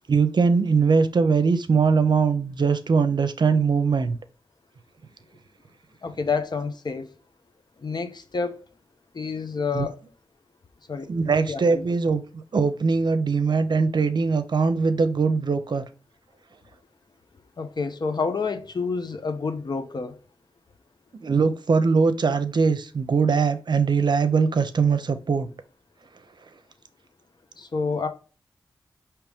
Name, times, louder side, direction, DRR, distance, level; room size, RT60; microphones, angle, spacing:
voice 1, 0.1-4.2 9.7-9.9 11.1-15.8 21.2-25.5, right 5 dB, 65° right, 0.6 m, -21 dB
voice 2, 6.0-7.1 7.8-8.6 9.1-10.0 10.9-11.1 11.5-11.8 17.6-20.1 27.6-28.1, left 4 dB, 60° left, 0.8 m, -28 dB
4.8 x 3.0 x 3.4 m
cardioid pair, 45°, 8 cm